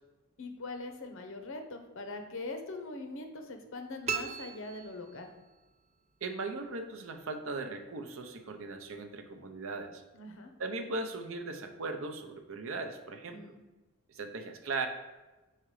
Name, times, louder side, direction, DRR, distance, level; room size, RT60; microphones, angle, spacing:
voice 1, 0.4-5.3 10.1-10.5 13.3-13.6, left 2 dB, 60° left, 6 dB, 0.8 m, -42 dB
sound 1, 4.1-5.6, right 5 dB, 30° right, 0.4 m, -38 dB
voice 2, 6.2-10.0 10.6-13.4 14.1-14.9, right 3 dB, 65° right, 6 dB, 0.7 m, -38 dB
4.9 x 4.4 x 4.7 m, 1.1 s
head